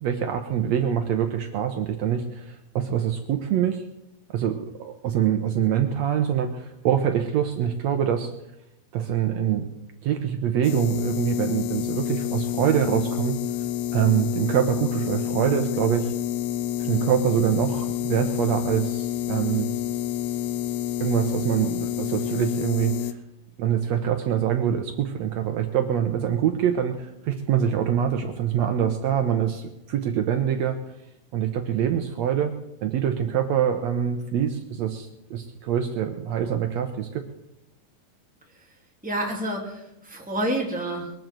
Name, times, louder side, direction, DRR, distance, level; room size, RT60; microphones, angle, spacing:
voice 1, 0.0-3.8 4.3-8.3 8.9-9.7 10.0-13.4 13.9-16.1 16.8-19.7 21.0-23.2 23.6-30.8 31.3-32.5 32.8-37.2, right 9 dB, 85° right, 6 dB, 1.5 m, -25 dB
sound 1, 10.6-23.1, left 12 dB, 75° left, 2.4 m, -28 dB
voice 2, 39.0-41.1, right 1 dB, ahead, -1 dB, 2.3 m, -28 dB
22.0 x 7.9 x 7.6 m, 0.87 s
omnidirectional pair, 4.4 m